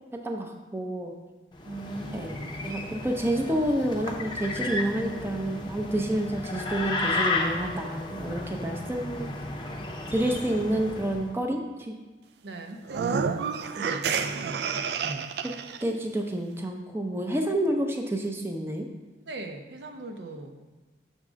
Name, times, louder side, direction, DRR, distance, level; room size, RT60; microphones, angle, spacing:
voice 1, 0.2-1.1 2.1-9.3 10.1-11.9 15.8-18.9, right 1 dB, 15° right, 2 dB, 0.5 m, -29 dB
sound 1, 1.5-11.3, left 2 dB, 25° left, 0.6 m, -33 dB
voice 2, 1.6-2.3 6.0-6.1 6.8-7.1 12.4-15.3 19.3-20.6, right 2 dB, 85° right, 4 dB, 0.7 m, -40 dB
sound 2, 12.8-15.8, right 6 dB, 70° right, 0.3 m, -29 dB
6.6 x 3.7 x 6.1 m, 1.2 s
head